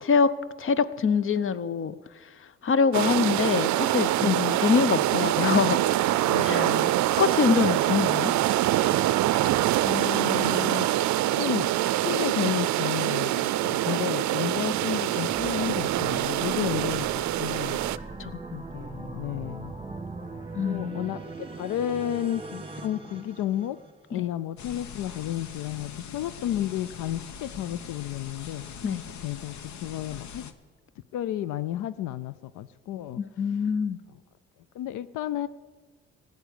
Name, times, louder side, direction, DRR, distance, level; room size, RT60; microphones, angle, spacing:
voice 1, 0.6-2.0 2.6-5.8 6.4-6.6 7.2-8.3 13.9-14.0 18.2-18.4 20.5-21.0 24.2-24.3 28.8-29.0 33.2-34.0, left 5 dB, 45° left, 0.8 m, -24 dB
sound 1, 2.9-18.0, right 14 dB, 70° right, 0.5 m, -25 dB
voice 2, 4.2-4.6 6.2-6.9 7.9-8.4 9.8-10.9 11.4-17.8 18.5-19.7 20.6-23.8 24.1-28.6 29.2-29.5 29.8-30.4 31.1-33.2 34.7-35.5, left 12 dB, 85° left, 0.5 m, -32 dB
sound 2, 13.9-24.1, right 3 dB, 20° right, 1.9 m, -40 dB
sound 3, 24.6-30.5, left 7 dB, 70° left, 1.1 m, -42 dB
15.0 x 8.2 x 10.0 m
cardioid pair, 90°, 30 cm